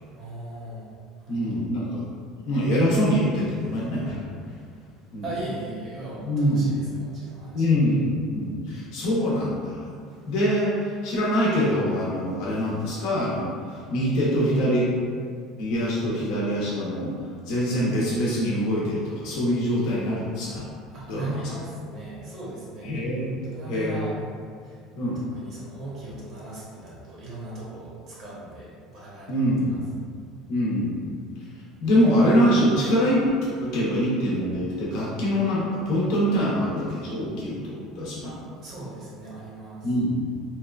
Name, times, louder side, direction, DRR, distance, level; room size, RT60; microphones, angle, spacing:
voice 1, 0.2-0.9 1.2-1.6 5.2-8.0 20.9-23.0 23.4-24.1 24.6-24.8 25.3-29.8 38.2-39.9, right 1 dB, 55° right, -6 dB, 0.8 m, -38 dB
voice 2, 1.3-2.1 2.5-4.2 5.1-5.2 6.2-6.7 7.5-9.9 10.3-14.9 15.6-17.1 17.5-20.6 21.1-21.4 22.8-24.1 25.0-25.2 29.3-29.9 30.5-31.2 31.8-33.2 33.6-38.3 39.8-40.3, equal, 70° left, -6 dB, 0.7 m, -24 dB
2.8 x 2.2 x 2.3 m, 2.1 s
supercardioid pair, 110°, 0 cm